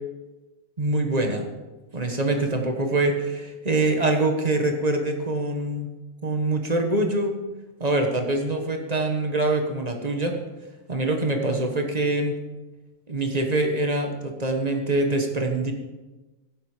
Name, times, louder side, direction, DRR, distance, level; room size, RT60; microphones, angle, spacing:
voice 1, 0.8-1.5 1.9-5.9 6.2-7.4 7.8-10.4 10.9-12.4 13.1-15.7, right 2 dB, 25° right, 4 dB, 1.3 m, -24 dB
16.5 x 7.9 x 5.0 m, 1.2 s
omnidirectional pair, 1.6 m